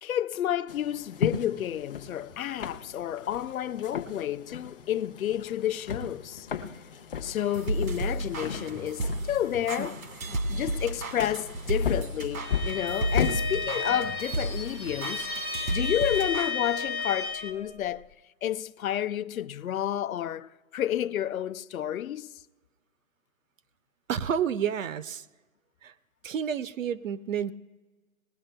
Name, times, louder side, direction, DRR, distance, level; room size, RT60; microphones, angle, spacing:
voice 1, 0.0-6.5 7.2-10.0 10.5-18.1 18.4-22.4, left 11 dB, 85° left, 0.6 m, -30 dB
sound 1, 0.7-13.4, left 6 dB, 45° left, 0.7 m, -36 dB
sound 2, 7.4-16.5, right 1 dB, 90° right, 1.4 m, -33 dB
Bowed string instrument, 12.4-17.6, left 4 dB, 20° right, 0.4 m, -33 dB
voice 2, 24.1-25.3 25.8-25.9 26.2-27.5, right 8 dB, 70° right, 0.6 m, -30 dB
20.0 x 16.5 x 2.2 m
hypercardioid pair, 170°, 41 cm